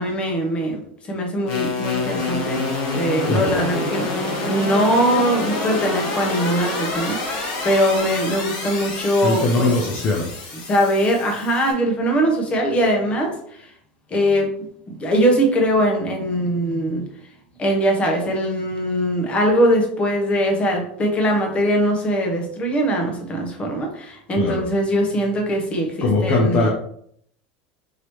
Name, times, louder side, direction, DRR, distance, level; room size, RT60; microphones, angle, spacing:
voice 1, 0.0-2.6 2.9-9.7 10.6-13.7 14.1-14.5 14.9-17.1 17.6-26.7, equal, 25° left, 2 dB, 1.0 m, -21 dB
sound 1, 1.5-11.7, left 3 dB, 55° left, 1.5 m, -27 dB
voice 2, 9.2-10.3 24.4-24.6 26.0-26.7, left 2 dB, 40° left, 0 dB, 0.7 m, -20 dB
4.8 x 2.9 x 3.1 m, 0.67 s
supercardioid pair, 140°, 5 cm